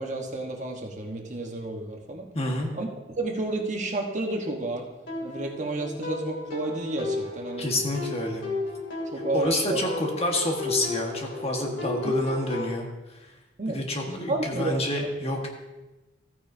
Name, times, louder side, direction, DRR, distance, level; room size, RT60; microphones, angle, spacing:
voice 1, 0.0-2.3 2.7-4.9 5.2-7.7 9.1-9.8 12.0-12.1 13.6-13.8 14.1-15.1, right 2 dB, 40° right, 2 dB, 1.1 m, -31 dB
voice 2, 2.3-2.7 7.6-8.4 9.3-13.3 13.7-15.5, left 1 dB, 35° left, 1 dB, 1.4 m, -28 dB
sound 1, 5.1-12.7, left 3 dB, 75° left, 2.7 m, -34 dB
14.5 x 9.3 x 2.7 m, 1.1 s
head